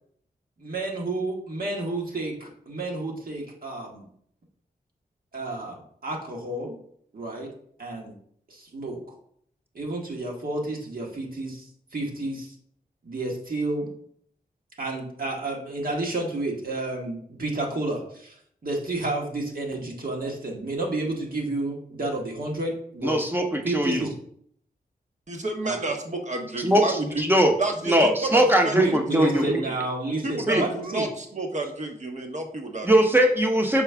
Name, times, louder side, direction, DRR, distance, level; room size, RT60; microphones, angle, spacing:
voice 1, 0.6-4.1 5.3-6.8 7.1-7.5 7.8-8.1 8.5-9.0 9.7-11.7 11.9-12.5 13.0-13.9 14.8-18.3 18.6-23.3 23.6-24.1 25.6-25.7 28.7-31.1, right 2 dB, 60° right, 0 dB, 1.4 m, -30 dB
voice 2, 23.0-24.1 26.6-27.5 27.9-29.6 30.5-30.6 32.8-33.8, equal, 10° right, 3 dB, 0.9 m, -21 dB
voice 3, 25.3-27.2 27.6-28.8 29.2-29.7 30.2-32.9, right 2 dB, 45° right, 4 dB, 1.0 m, -30 dB
5.9 x 4.6 x 3.4 m, 0.65 s
wide cardioid pair, 85°, 17 cm